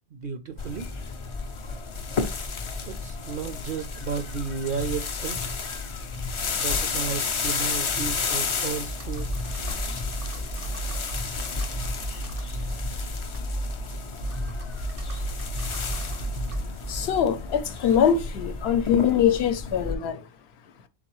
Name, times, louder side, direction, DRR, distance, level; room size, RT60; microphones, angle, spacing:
voice 1, 0.1-0.9 2.9-5.4 6.6-9.3 10.8-10.9, right 6 dB, 60° right, 0.6 m, -33 dB
sound 1, 0.6-20.0, left 4 dB, 45° left, 0.4 m, -32 dB
Computer keyboard, 8.8-17.4, right 2 dB, 80° right, 1.2 m, -34 dB
voice 2, 16.9-20.3, left 8 dB, 70° left, 0.8 m, -23 dB
4.0 x 3.8 x 3.0 m
omnidirectional pair, 1.1 m